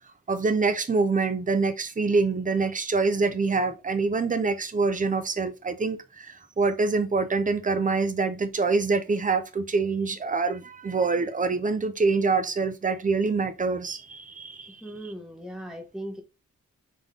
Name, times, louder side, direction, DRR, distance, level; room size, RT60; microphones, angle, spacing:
voice 1, 0.3-15.1, right 4 dB, 25° right, 0.5 m, -25 dB
voice 2, 14.8-16.2, right 1 dB, ahead, 1.0 m, -38 dB
3.8 x 3.5 x 3.6 m
wide cardioid pair, 175°, 31 cm